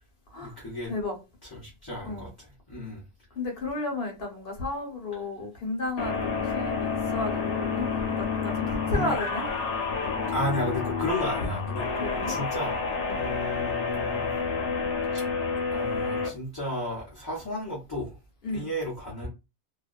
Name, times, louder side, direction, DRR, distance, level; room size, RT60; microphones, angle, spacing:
voice 1, 0.4-0.9 1.4-2.3 2.7-3.0 8.7-9.1 10.3-11.9 12.3-12.8 13.1-14.3 15.1-15.2 15.7-18.2 18.5-19.3, left 1 dB, 25° left, 0.7 m, -33 dB
voice 2, 3.3-9.5 12.0-12.3 13.1-13.2 18.4-18.7, left 2 dB, 60° left, 1.0 m, -33 dB
sound 1, 6.0-16.3, left 5 dB, 90° left, 0.9 m, -29 dB
2.5 x 2.2 x 2.3 m
omnidirectional pair, 1.2 m